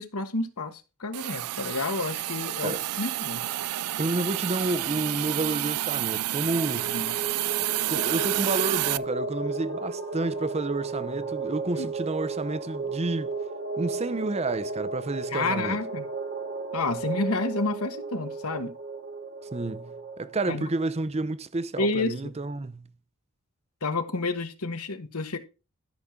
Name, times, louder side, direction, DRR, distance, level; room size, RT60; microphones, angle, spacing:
voice 1, 0.0-3.4 6.9-7.1 11.7-11.9 15.3-16.1 16.7-18.7 20.5-20.6 21.8-22.1 23.8-25.4, left 3 dB, 80° left, 1.4 m, -30 dB
Hiss, 1.1-9.0, right 16 dB, 85° right, 0.4 m, -29 dB
voice 2, 4.0-7.0 7.9-13.3 13.8-15.8 19.5-22.9, right 2 dB, 30° right, 0.6 m, -30 dB
sound 1, 6.3-20.6, right 3 dB, 45° right, 1.2 m, -34 dB
13.5 x 5.9 x 3.7 m
head